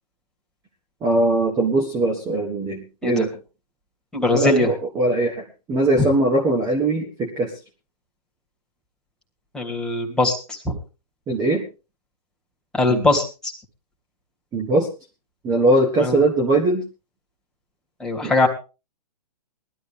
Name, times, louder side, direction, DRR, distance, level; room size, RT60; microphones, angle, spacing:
voice 1, 1.0-3.3 4.3-7.5 11.3-11.6 12.9-13.1 14.5-14.9 15.4-16.8 18.2-18.3, right 2 dB, 20° right, 2 dB, 1.6 m, -21 dB
voice 2, 4.1-4.7 9.5-10.7 12.7-13.5 16.0-16.1 18.0-18.5, left 2 dB, 5° left, -1 dB, 2.8 m, -21 dB
19.0 x 12.5 x 3.5 m, 0.32 s
hypercardioid pair, 140°, 21 cm